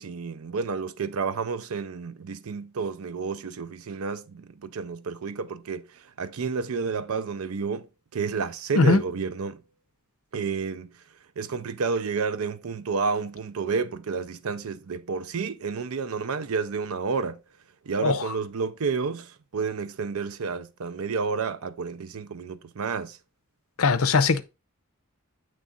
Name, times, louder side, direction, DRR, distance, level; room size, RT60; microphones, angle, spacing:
voice 1, 0.0-5.8 6.2-7.9 8.1-9.6 10.3-10.9 11.4-17.4 17.9-23.2, right 5 dB, 75° right, 0.5 m, -30 dB
voice 2, 23.8-24.4, left 4 dB, 75° left, 0.6 m, -20 dB
8.2 x 3.3 x 3.8 m
head